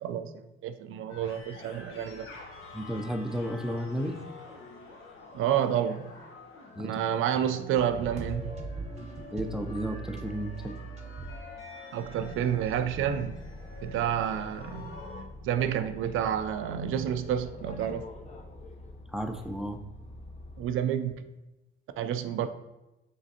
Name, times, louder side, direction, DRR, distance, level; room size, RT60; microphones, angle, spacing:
voice 1, 0.0-2.3 5.3-6.1 6.8-8.5 11.9-13.4 13.8-14.9 15.4-18.1 20.6-21.2 22.0-22.5, right 9 dB, 75° right, 10 dB, 0.4 m, -29 dB
sound 1, 1.1-15.2, left 3 dB, 75° left, 0.9 m, -47 dB
voice 2, 2.7-4.2 6.8-6.9 9.3-10.8 19.1-19.8, equal, ahead, 5 dB, 0.5 m, -33 dB
sound 2, 7.8-11.4 12.0-12.1, right 4 dB, 30° right, 0.8 m, -40 dB
Boat Water vehicle, 11.9-20.8, left 2 dB, 30° left, 0.7 m, -45 dB
5.1 x 3.1 x 2.8 m, 1.0 s
supercardioid pair, 65°, 21 cm